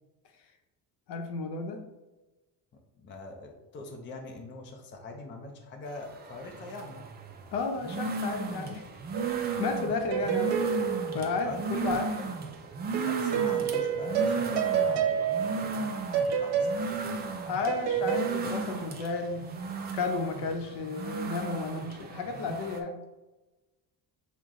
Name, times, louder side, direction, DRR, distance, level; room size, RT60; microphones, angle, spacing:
voice 1, 1.1-1.8 7.5-8.9 9.6-10.6 11.1-12.0 17.5-19.5 19.9-23.0, left 4 dB, 75° left, 4 dB, 0.8 m, -32 dB
voice 2, 2.7-7.0 11.4-12.3 13.0-17.3, left 2 dB, 30° left, 2 dB, 0.5 m, -43 dB
sound 1, 5.9-22.8, right 4 dB, 25° right, 0.3 m, -36 dB
sound 2, 9.1-12.0 12.9-18.3, right 7 dB, 70° right, 0.8 m, -30 dB
6.3 x 2.2 x 3.6 m, 1.1 s
cardioid pair, 150°, 41 cm